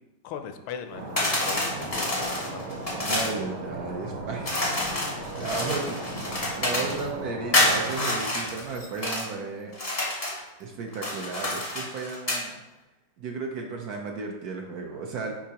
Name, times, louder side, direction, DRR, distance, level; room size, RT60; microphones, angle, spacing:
voice 1, 0.2-2.8, left 7 dB, 85° left, 7 dB, 1.5 m, -39 dB
Stream, 0.9-8.0, right 2 dB, 40° right, 1.0 m, -37 dB
sound 1, 1.2-3.4 4.4-7.0 7.5-9.3 9.7-10.4 10.9-12.5, left 1 dB, 30° left, 0.6 m, -28 dB
voice 2, 3.0-4.6 5.1-6.3 6.6-9.7 10.6-12.6 13.2-15.3, right 4 dB, 65° right, 2 dB, 0.9 m, -34 dB
7.3 x 5.1 x 2.9 m, 1.1 s
omnidirectional pair, 2.3 m